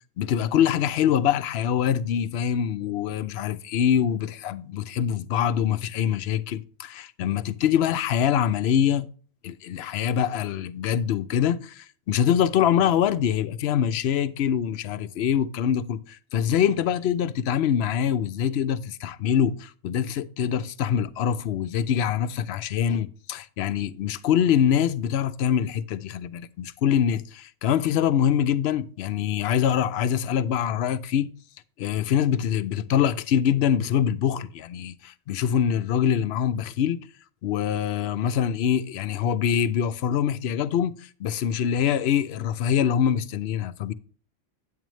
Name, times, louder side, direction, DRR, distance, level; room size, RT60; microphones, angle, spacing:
voice 1, 0.2-9.1 9.4-31.3 31.8-37.0 37.4-43.9, left 9 dB, 65° left, 0.8 m, -24 dB
9.2 x 9.1 x 3.1 m
omnidirectional pair, 1.3 m